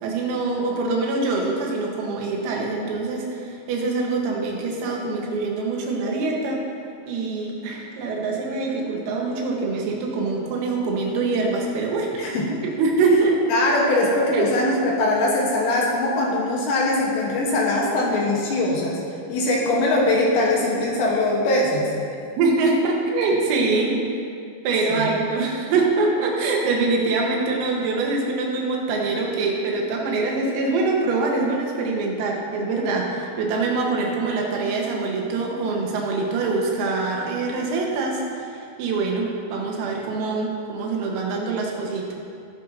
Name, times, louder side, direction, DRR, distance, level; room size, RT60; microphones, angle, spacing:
voice 1, 0.0-6.6 7.1-12.1 12.7-13.4 14.3-14.5 22.4-24.2 24.7-42.1, right 3 dB, 85° right, -1 dB, 4.1 m, -24 dB
voice 2, 12.2-12.6 13.5-19.0 19.3-22.0 23.7-24.0 24.9-25.1, left 2 dB, 70° left, -3 dB, 3.1 m, -22 dB
18.5 x 8.6 x 2.8 m, 2.4 s
omnidirectional pair, 6.0 m